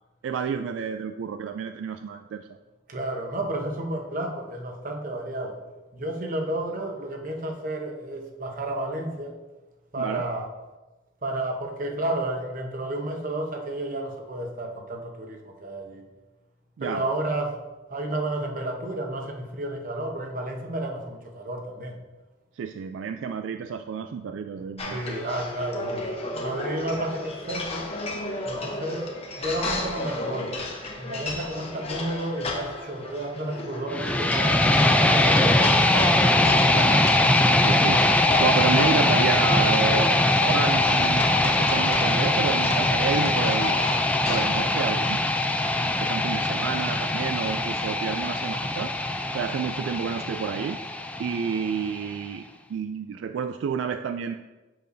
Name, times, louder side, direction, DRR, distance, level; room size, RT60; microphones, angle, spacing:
voice 1, 0.2-2.5 10.0-10.2 16.8-17.0 22.6-25.0 36.7-37.1 37.6-38.1 38.4-43.9 44.3-48.9 49.3-50.8 51.2-52.4 52.7-54.3, right 6 dB, 75° right, 8 dB, 0.3 m, -30 dB
voice 2, 2.9-5.6 5.9-9.4 9.9-10.5 11.2-16.1 16.8-17.6 17.9-22.0 24.9-27.9 28.4-30.5 31.0-34.6 34.9-36.5, right 1 dB, 45° right, 3 dB, 0.9 m, -31 dB
sound 1, 24.8-44.5, left 2 dB, 30° left, 0.9 m, -34 dB
sound 2, 33.9-51.9, left 1 dB, 5° left, 0.3 m, -22 dB
7.6 x 6.6 x 2.6 m, 1.1 s
head